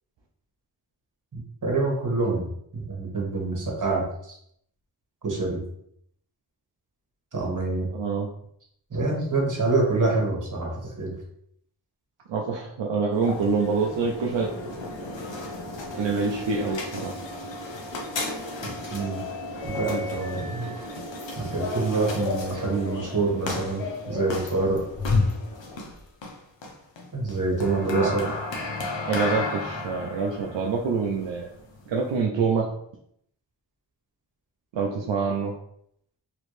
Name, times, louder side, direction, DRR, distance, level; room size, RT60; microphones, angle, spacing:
voice 1, 1.3-4.4 5.2-5.6 7.3-7.9 8.9-11.1 18.9-19.2 19.6-20.7 21.4-24.8 27.1-28.3, right 3 dB, 45° right, -2 dB, 1.3 m, -26 dB
voice 2, 7.9-8.3 12.3-14.5 16.0-17.1 27.9-28.1 29.1-31.5 31.9-32.7 34.7-35.5, right 4 dB, 80° right, -1 dB, 0.5 m, -26 dB
sound 1, 13.1-32.2, left 3 dB, 85° left, 0.7 m, -33 dB
3.0 x 2.5 x 3.1 m, 0.71 s
cardioid pair, 50°, 43 cm